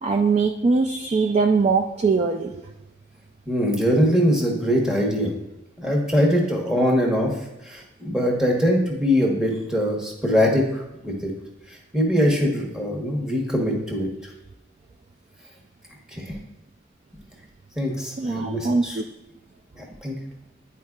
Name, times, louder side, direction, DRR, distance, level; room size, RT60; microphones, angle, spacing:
voice 1, 0.0-2.6 18.2-19.0, right 4 dB, 35° right, 3 dB, 0.3 m, -21 dB
voice 2, 3.5-5.3 5.8-7.3 7.6-11.3 11.7-14.1 16.1-16.4 17.8-19.0 19.7-20.1, equal, 5° right, 0 dB, 1.1 m, -22 dB
10.0 x 4.4 x 2.4 m, 0.91 s
head